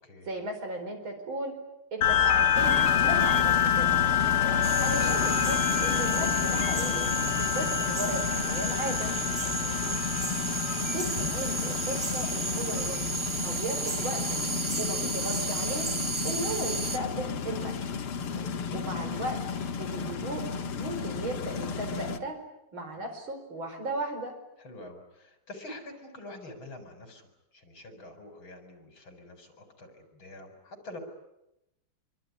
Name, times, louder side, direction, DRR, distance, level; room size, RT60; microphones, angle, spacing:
voice 1, 0.2-1.5 1.9-3.9 4.8-7.1 7.4-9.1 10.9-13.0 13.4-14.4 14.8-15.9 16.2-18.0 18.7-19.4 19.8-20.5 20.8-22.4 22.7-24.3, right 2 dB, 65° right, 5 dB, 5.5 m, -36 dB
sound 1, 2.0-12.9, left 10 dB, 50° left, 1.6 m, -27 dB
sound 2, 2.5-22.2, left 5 dB, 85° left, 2.4 m, -33 dB
sound 3, 4.6-17.0, right 3 dB, 35° right, 0.4 m, -33 dB
voice 2, 9.4-9.8 18.3-18.6 23.0-23.1 24.6-31.0, left 2 dB, 65° left, 7 dB, 5.4 m, -47 dB
25.5 x 24.0 x 9.7 m, 0.90 s
omnidirectional pair, 2.4 m